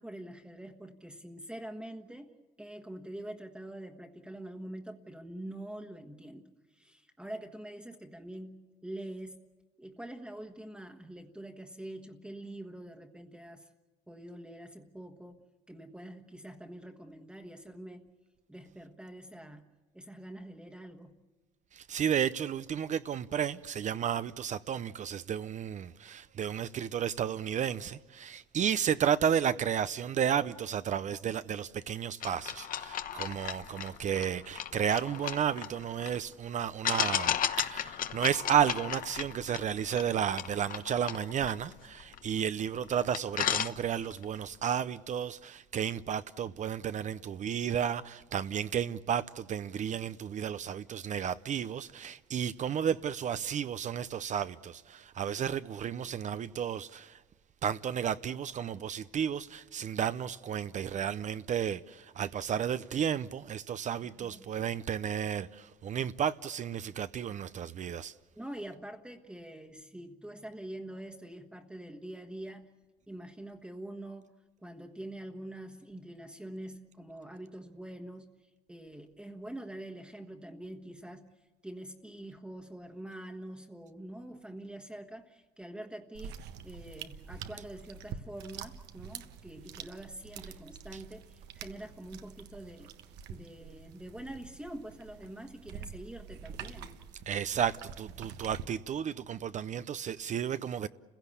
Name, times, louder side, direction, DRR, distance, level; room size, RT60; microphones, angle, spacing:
voice 1, 0.0-2.3 2.6-9.4 9.8-13.7 14.1-18.1 18.5-19.6 19.9-21.2 64.0-64.4 68.4-72.7 73.1-74.3 74.6-81.3 81.6-86.4 86.6-93.0 93.3-96.9, right 1 dB, 5° right, 1.4 m, -45 dB
voice 2, 21.7-57.2 57.6-68.1 97.3-100.9, right 8 dB, 45° right, 0.7 m, -32 dB
sound 1, 32.2-36.2 36.8-42.5 42.8-42.9 43.1-44.2, left 9 dB, 55° left, 1.1 m, -35 dB
sound 2, 86.1-98.6, right 7 dB, 85° right, 1.4 m, -46 dB
29.5 x 16.5 x 8.3 m
cardioid pair, 110°, 17 cm